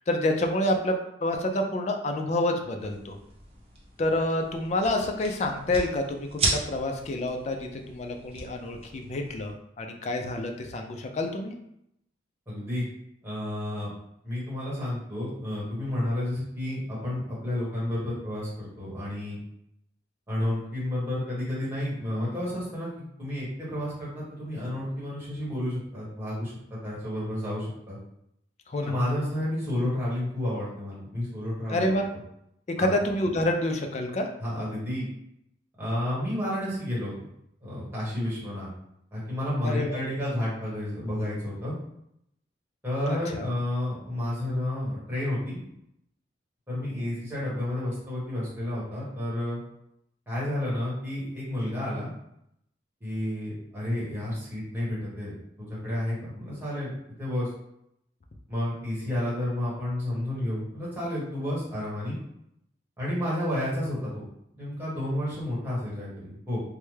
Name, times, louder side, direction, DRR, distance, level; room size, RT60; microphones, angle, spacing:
voice 1, 0.1-3.2 4.0-11.6 28.7-28.9 31.7-32.1 32.8-34.3 39.6-40.0 43.1-43.5, left 1 dB, 35° left, 4 dB, 0.3 m, -28 dB
sound 1, 2.8-9.5, right 2 dB, 30° right, 0.6 m, -36 dB
voice 2, 12.5-12.9 13.2-13.9 14.2-19.4 20.3-22.9 23.2-26.5 26.8-28.0 28.8-31.9 32.8-32.9 34.4-35.1 35.8-37.1 37.6-38.7 39.1-41.7 42.8-45.6 46.7-49.6 50.3-52.1 53.0-55.3 55.8-56.9 57.2-57.5 58.5-62.2 63.0-64.2 64.6-66.6, left 1 dB, 10° right, -8 dB, 1.2 m, -31 dB
3.3 x 2.1 x 3.1 m, 0.78 s
head